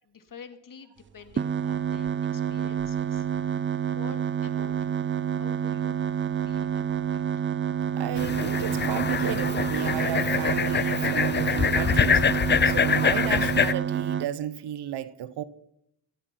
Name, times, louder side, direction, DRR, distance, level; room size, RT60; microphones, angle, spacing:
voice 1, 0.0-3.6 3.9-6.0 6.4-7.6, left 6 dB, 45° left, 2.6 m, -49 dB
sound 1, 1.3-14.3, right 8 dB, 25° right, 0.5 m, -28 dB
voice 2, 7.9-12.3 12.6-15.4, right 11 dB, 65° right, 1.0 m, -33 dB
sound 2, 8.2-13.7, left 7 dB, 25° left, 0.6 m, -25 dB
17.0 x 15.5 x 4.6 m
supercardioid pair, 55°, 44 cm